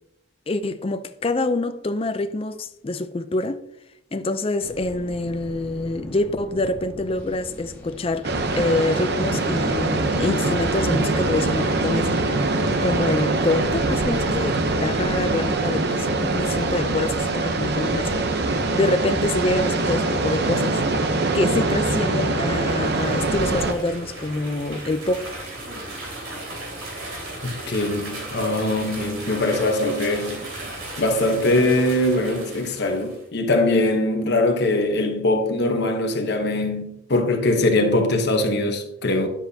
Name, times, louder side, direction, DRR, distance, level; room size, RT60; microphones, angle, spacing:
voice 1, 0.5-3.6 4.1-8.3 8.6-12.5 12.8-20.8 21.3-25.3, left 2 dB, 25° left, 0.4 m, -26 dB
sound 1, 4.6-13.1, equal, 10° left, 1.7 m, -41 dB
sound 2, 8.2-23.7, right 2 dB, 50° right, 0.8 m, -23 dB
sound 3, 22.4-33.2, right 1 dB, 80° right, 3.1 m, -36 dB
voice 2, 27.4-30.4 31.0-39.3, left 2 dB, 50° left, 1.0 m, -22 dB
10.0 x 7.3 x 2.8 m
head